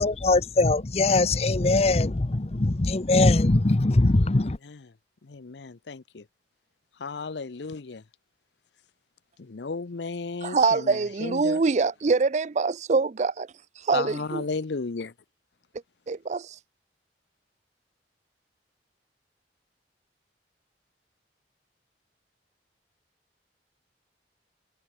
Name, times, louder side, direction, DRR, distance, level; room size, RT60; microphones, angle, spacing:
voice 1, 0.0-4.6, left 2 dB, 35° left, 0.8 m, -21 dB
voice 2, 5.2-6.2 7.0-8.0 9.4-11.6 13.9-15.1, left 4 dB, 75° left, 0.7 m, -34 dB
voice 3, 10.4-13.5 13.8-14.4 16.1-16.6, right 4 dB, 40° right, 0.4 m, -24 dB
head